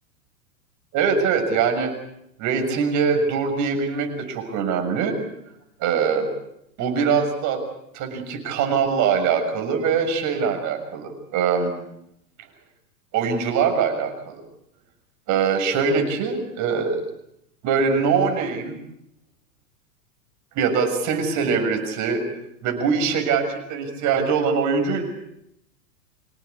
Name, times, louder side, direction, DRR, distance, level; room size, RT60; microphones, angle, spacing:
voice 1, 0.9-1.9 2.4-5.2 5.8-6.3 6.8-7.6 7.9-11.7 13.1-14.4 15.3-17.0 17.6-18.8 20.5-22.2 22.6-25.0, right 6 dB, 40° right, 5 dB, 6.8 m, -22 dB
26.0 x 18.0 x 8.5 m, 0.79 s
hypercardioid pair, 115°, 46 cm